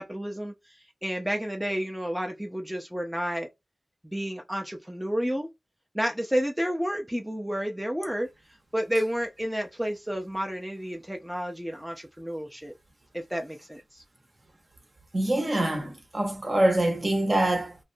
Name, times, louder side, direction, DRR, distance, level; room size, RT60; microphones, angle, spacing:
voice 1, 0.0-3.5 4.0-5.5 5.9-8.3 8.7-12.7 13.1-14.0, equal, 5° right, 0.5 m, -31 dB
voice 2, 15.1-17.8, right 1 dB, 40° right, 0.8 m, -25 dB
2.4 x 2.1 x 2.6 m
wide cardioid pair, 75°, 0 cm